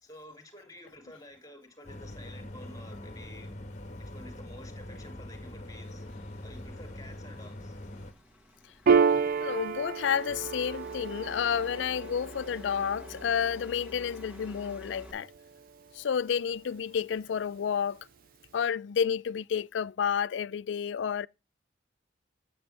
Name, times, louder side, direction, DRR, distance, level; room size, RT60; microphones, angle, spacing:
voice 1, 0.0-3.6 4.0-6.1 6.4-7.7, left 1 dB, 20° left, 2.3 m, -50 dB
sound 1, 1.8-8.1, left 1 dB, 40° left, 1.3 m, -43 dB
sound 2, 5.6-15.1, left 1 dB, 10° right, 1.8 m, -50 dB
Piano, 8.9-15.8, right 6 dB, 50° right, 0.4 m, -30 dB
voice 2, 9.4-15.3 15.9-18.1 18.5-21.3, left 7 dB, 80° left, 0.4 m, -30 dB
8.8 x 8.0 x 3.3 m
head